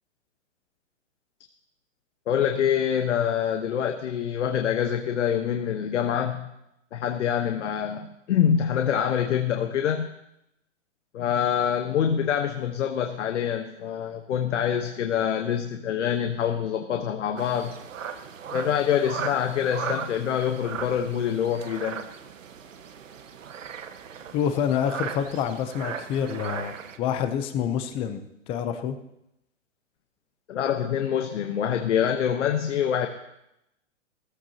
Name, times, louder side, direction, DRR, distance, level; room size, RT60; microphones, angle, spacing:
voice 1, 2.3-6.5 6.9-10.1 11.1-17.8 18.5-22.0 30.5-33.1, left 8 dB, 70° left, 5 dB, 1.1 m, -25 dB
sound 1, 17.4-27.0, right 7 dB, 90° right, 1.3 m, -37 dB
voice 2, 24.3-26.7 27.0-28.2 28.5-29.0, left 8 dB, 15° left, 9 dB, 0.6 m, -27 dB
17.5 x 14.5 x 2.8 m, 0.83 s
hypercardioid pair, 150°, 37 cm